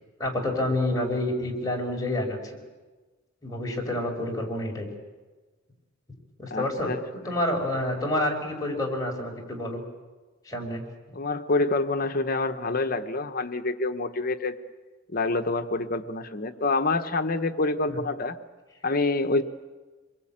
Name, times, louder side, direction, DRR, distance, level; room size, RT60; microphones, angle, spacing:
voice 1, 0.2-2.6 3.4-4.9 6.4-6.9 7.2-9.8 10.4-10.8 17.9-18.0, left 1 dB, 20° left, 0 dB, 5.1 m, -28 dB
voice 2, 6.5-7.3 11.1-14.6 15.1-18.4 18.8-19.4, left 3 dB, 50° left, 8 dB, 1.0 m, -27 dB
26.5 x 22.0 x 8.8 m, 1.3 s
head